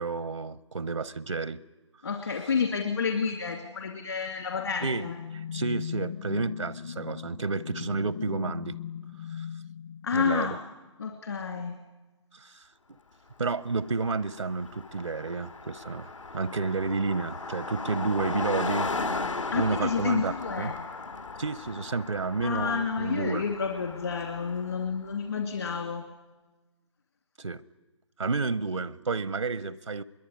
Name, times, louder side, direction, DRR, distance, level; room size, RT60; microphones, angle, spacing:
voice 1, 0.0-1.6 4.8-8.8 9.3-9.5 10.1-10.6 12.3-13.0 13.4-18.9 19.5-20.7 21.4-23.4 27.4-27.6 28.2-30.0, right 4 dB, 80° right, 19 dB, 0.8 m, -31 dB
voice 2, 2.0-5.2 10.0-10.6 11.0-11.8 19.5-20.8 22.4-26.0, left 6 dB, 55° left, 3 dB, 2.6 m, -30 dB
sound 1, 4.3-10.8, left 8 dB, 35° left, 0.8 m, -39 dB
Car passing by, 13.6-13.7 13.9-24.9, left 3 dB, 75° left, 2.0 m, -36 dB
24.0 x 22.5 x 9.9 m, 1.2 s
figure-of-eight pair, 145°, 16 cm